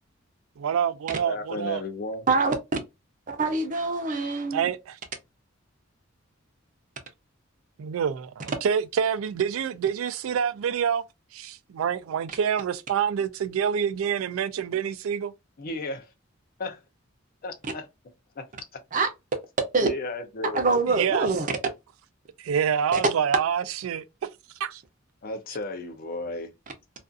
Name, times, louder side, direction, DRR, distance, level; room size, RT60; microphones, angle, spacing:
voice 1, 0.6-1.8 4.5-5.0 7.8-11.0 11.3-15.3 20.9-21.3 22.4-24.0 24.6-24.8, right 8 dB, 90° right, 0.3 m, -27 dB
voice 2, 1.2-2.3 15.6-16.1 16.6-16.8 17.4-17.9 18.4-18.8 19.8-20.7 25.2-26.5, left 2 dB, 45° left, 0.4 m, -34 dB
voice 3, 3.3-4.7 18.9-19.1 19.7-19.9 20.5-21.5 22.9-23.0, right 3 dB, 40° right, 0.6 m, -24 dB
2.5 x 2.3 x 2.4 m
head